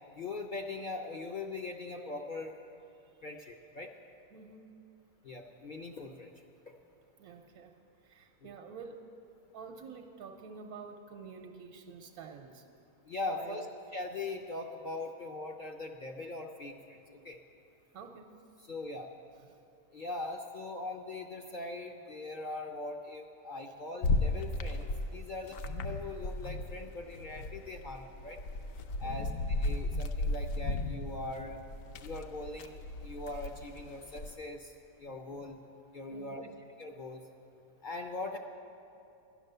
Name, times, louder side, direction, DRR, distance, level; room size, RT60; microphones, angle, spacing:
voice 1, 0.1-2.6 3.2-3.9 5.2-6.3 13.1-13.7 13.9-17.4 18.7-19.1 19.9-24.9 25.1-28.4 29.0-31.6 32.0-34.7 35.0-35.6 35.9-36.5 36.8-37.2 37.8-38.4, left 2 dB, 50° left, 3 dB, 0.6 m, -41 dB
voice 2, 4.3-4.7 7.2-7.7 8.0-9.1 9.5-12.7 13.3-14.1 17.9-18.4 19.3-19.6 23.7-23.8 29.0-29.3 36.1-36.6, right 5 dB, 70° right, 3 dB, 1.1 m, -49 dB
sound 1, 24.0-26.8 27.1-34.3, left 2 dB, 65° left, 1.0 m, -35 dB
13.0 x 10.5 x 6.7 m, 2.7 s
omnidirectional pair, 1.6 m